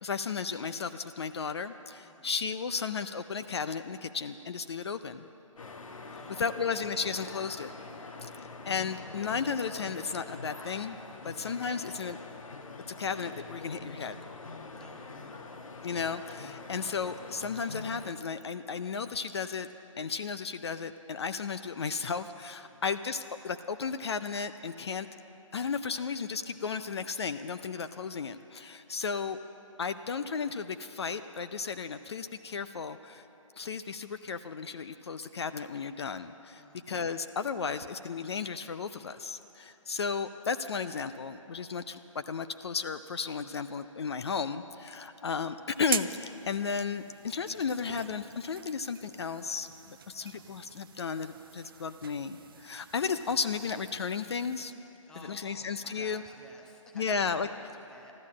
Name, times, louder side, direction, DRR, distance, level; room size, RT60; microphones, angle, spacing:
voice 1, 0.0-5.3 6.1-7.7 8.3-11.0 11.2-12.2 13.0-14.2 15.8-19.7 20.0-25.1 25.5-29.4 29.8-33.2 33.6-54.7 55.2-56.2 56.9-57.5, left 5 dB, 50° left, 10 dB, 0.5 m, -34 dB
sound 1, 5.6-18.1, left 3 dB, 75° left, 1.3 m, -44 dB
voice 2, 6.1-6.6 14.7-15.4 22.7-22.8 36.6-36.9 54.9-58.1, left 1 dB, 5° left, 0 dB, 0.7 m, -54 dB
sound 2, 45.7-54.7, right 7 dB, 40° right, 0.5 m, -43 dB
14.0 x 12.0 x 7.4 m, 2.9 s
hypercardioid pair, 155°, 17 cm